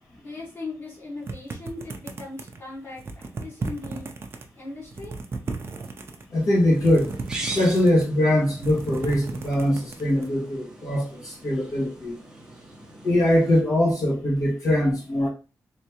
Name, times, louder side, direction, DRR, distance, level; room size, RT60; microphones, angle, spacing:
voice 1, 0.2-3.0 3.4-4.1 4.5-5.1, left 3 dB, 35° left, -5 dB, 1.5 m, -38 dB
sound 1, 1.3-2.6 3.0-4.4 4.8-6.3 6.8-8.1 8.5-10.3, right 3 dB, 35° right, 0.5 m, -34 dB
voice 2, 6.3-7.1 7.5-12.1 13.0-15.3, left 1 dB, 55° left, -4 dB, 1.5 m, -22 dB
sound 2, 6.3-13.6, right 2 dB, 10° right, 0.8 m, -41 dB
3.4 x 3.2 x 2.9 m, 0.33 s
wide cardioid pair, 165°, 7 cm